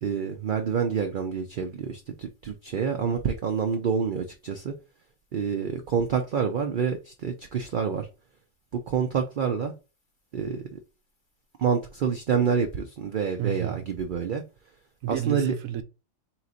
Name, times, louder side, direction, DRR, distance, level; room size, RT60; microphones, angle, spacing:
voice 1, 0.0-4.7 5.3-8.1 8.7-9.7 10.3-10.8 11.6-14.4 15.1-15.5, right 6 dB, 60° right, 0.5 m, -27 dB
voice 2, 13.4-13.9 15.0-15.8, right 10 dB, 80° right, 1.0 m, -30 dB
3.9 x 3.0 x 3.8 m
omnidirectional pair, 1.4 m